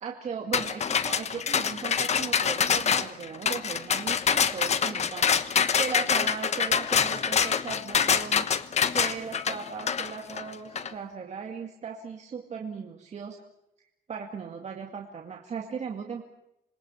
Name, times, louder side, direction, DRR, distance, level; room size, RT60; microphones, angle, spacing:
voice 1, 0.0-8.5 8.9-13.4 14.1-16.2, right 6 dB, 45° right, 2 dB, 2.2 m, -37 dB
sound 1, 0.5-10.9, left 7 dB, 45° left, 1.2 m, -25 dB
27.0 x 20.5 x 8.2 m, 0.82 s
wide cardioid pair, 155°, 16 cm